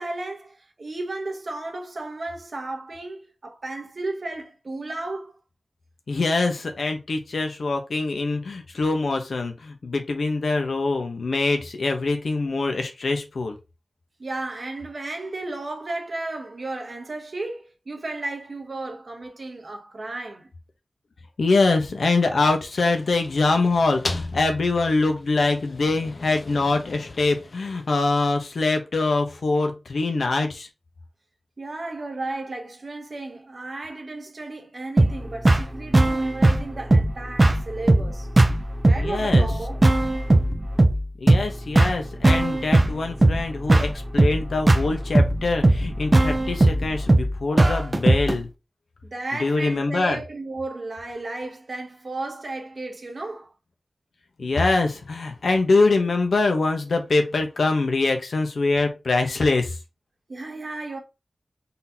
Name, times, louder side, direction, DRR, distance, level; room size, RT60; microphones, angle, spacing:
voice 1, 0.0-5.4 14.2-20.5 31.6-38.3 38.9-39.9 49.0-53.5 60.3-61.0, right 2 dB, 55° right, 1.1 m, -34 dB
voice 2, 6.1-13.6 21.4-30.7 38.9-39.5 41.2-48.5 49.4-50.2 54.4-59.8, left 3 dB, 90° left, 0.9 m, -24 dB
sound 1, 22.4-28.4, left 2 dB, 55° left, 0.6 m, -37 dB
sound 2, 35.0-48.4, right 2 dB, 30° right, 0.5 m, -19 dB
4.0 x 3.8 x 2.8 m
wide cardioid pair, 90°, 0 cm